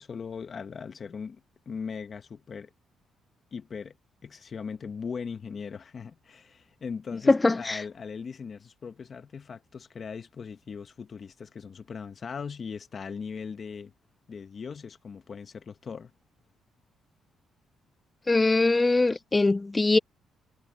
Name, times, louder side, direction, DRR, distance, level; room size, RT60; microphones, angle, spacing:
voice 1, 0.0-2.7 3.5-4.0 4.2-13.9 14.3-16.1, left 6 dB, 45° left, 1.5 m, -39 dB
voice 2, 7.3-7.8 18.3-20.0, left 3 dB, 20° left, 0.3 m, -22 dB
cardioid pair, 90°, 0 cm